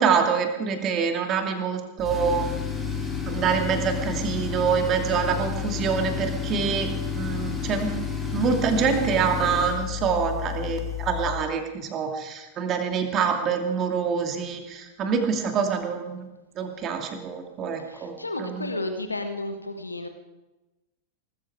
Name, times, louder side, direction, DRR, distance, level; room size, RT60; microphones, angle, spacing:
voice 1, 0.0-2.5 3.2-7.9 8.3-16.1 16.6-18.1 18.4-18.7, right 6 dB, 30° right, 5 dB, 2.6 m, -26 dB
Tools, 2.0-11.5, left 6 dB, 5° right, 5.5 m, -31 dB
voice 2, 17.8-20.1, left 2 dB, 80° left, 7 dB, 1.3 m, -32 dB
19.5 x 14.0 x 4.8 m, 1.0 s
figure-of-eight pair, 90°, 0 cm